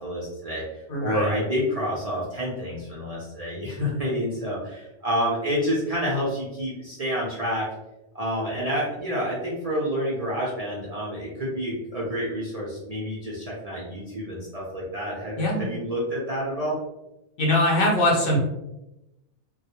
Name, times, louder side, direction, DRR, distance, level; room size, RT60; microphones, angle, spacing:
voice 1, 0.0-7.7 8.1-16.7, equal, 45° right, -6 dB, 0.5 m, -28 dB
voice 2, 0.9-1.3 15.4-15.6 17.4-18.4, left 1 dB, 60° left, -2 dB, 0.7 m, -22 dB
2.3 x 2.0 x 2.9 m, 0.91 s
omnidirectional pair, 1.2 m